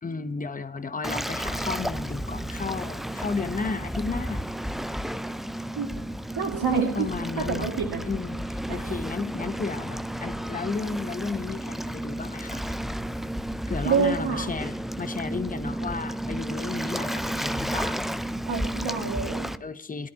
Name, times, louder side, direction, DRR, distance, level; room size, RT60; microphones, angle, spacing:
voice 1, 0.0-4.4 7.0-7.7 8.0-12.6 13.7-18.0 19.6-20.1, left 4 dB, 15° left, 10 dB, 1.0 m, -33 dB
Waves surf, 1.0-19.6, right 1 dB, ahead, 0.4 m, -32 dB
voice 2, 6.4-7.1 7.4-8.0 8.7-8.8 13.8-14.5 18.4-19.5, right 6 dB, 50° right, 0 dB, 2.3 m, -27 dB
21.0 x 10.5 x 2.9 m, 0.63 s
supercardioid pair, 75°, 48 cm